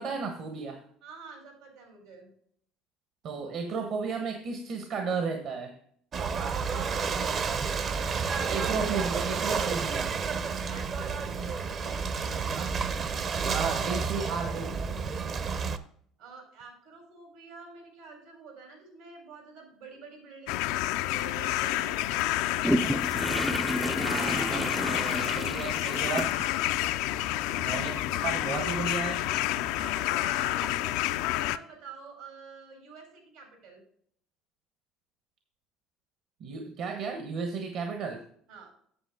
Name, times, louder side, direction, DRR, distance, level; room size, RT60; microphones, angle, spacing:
voice 1, 0.0-0.8 3.2-5.8 8.5-10.1 12.5-12.7 13.5-14.8 24.0-26.3 27.6-29.3 36.4-38.2, right 5 dB, 60° right, 5 dB, 1.2 m, -34 dB
voice 2, 1.0-2.3 6.7-7.5 10.7-12.4 16.2-22.9 25.8-26.2 27.2-27.6 29.7-31.1 31.3-33.8 38.5-38.7, right 4 dB, 80° right, 3 dB, 3.8 m, -48 dB
Ocean / Boat Water vehicle, 6.1-15.8, right 5 dB, 45° right, 0.7 m, -30 dB
sound 1, 20.5-31.6, left 15 dB, 80° left, 0.3 m, -29 dB
sound 2, 22.6-30.7, equal, ahead, 0.4 m, -34 dB
8.5 x 7.2 x 3.6 m, 0.63 s
supercardioid pair, 95°, 0 cm